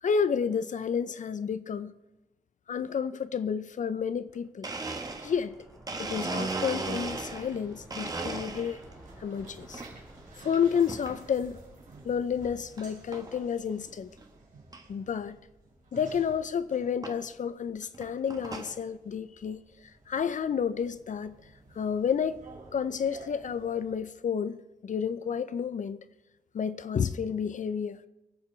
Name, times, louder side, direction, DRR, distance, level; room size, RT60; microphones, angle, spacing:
voice 1, 0.0-1.9 2.7-4.7 5.2-5.5 6.0-8.8 9.2-9.8 10.4-11.6 12.0-14.1 14.9-15.4 15.9-19.6 20.1-21.4 21.8-22.4 22.7-26.0 26.5-28.0, left 7 dB, 55° left, 0.5 m, -30 dB
Domestic sounds home sounds, 4.3-4.4 4.6-7.6 7.9-8.9 9.4-9.9 10.9-11.2 11.8-11.9 12.8-12.9 13.1-13.5 13.9-14.0 14.2-14.3 14.7-14.8 16.1-16.2 17.0-17.2 17.8-18.8, right 3 dB, 25° right, 1.2 m, -36 dB
sound 1, 5.0-13.8 14.0-14.1, right 1 dB, ahead, 3.7 m, -54 dB
sound 2, 6.8-24.0, right 3 dB, 55° right, 4.1 m, -53 dB
24.0 x 8.2 x 4.4 m
wide cardioid pair, 165°, 16 cm